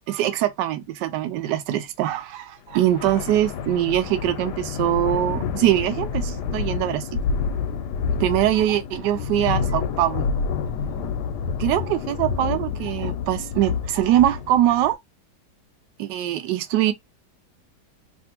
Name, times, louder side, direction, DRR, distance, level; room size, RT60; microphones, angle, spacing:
voice 1, 0.1-7.2 8.2-10.3 11.6-15.0 16.0-16.9, right 13 dB, 70° right, 1.1 m, -23 dB
sound 1, 2.7-14.9, left 6 dB, 70° left, 1.1 m, -28 dB
3.3 x 2.5 x 2.9 m
omnidirectional pair, 2.1 m